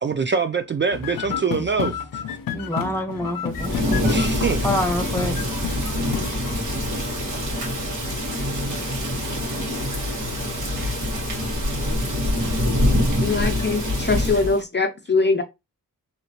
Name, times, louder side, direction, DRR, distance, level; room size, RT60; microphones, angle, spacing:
voice 1, 0.0-1.9 4.0-4.7 7.3-7.5 8.0-8.5 10.7-11.5 11.8-11.9, right 5 dB, 35° right, 0.4 m, -26 dB
sound 1, 0.9-6.5, left 8 dB, 80° left, 0.5 m, -31 dB
voice 2, 2.5-3.7 4.6-5.5, left 1 dB, 5° left, 1.1 m, -26 dB
Thunder / Rain, 3.5-14.6, equal, 65° right, 1.7 m, -25 dB
voice 3, 13.2-15.4, left 3 dB, 30° left, 0.7 m, -22 dB
3.0 x 2.8 x 2.9 m
cardioid pair, 55°, 33 cm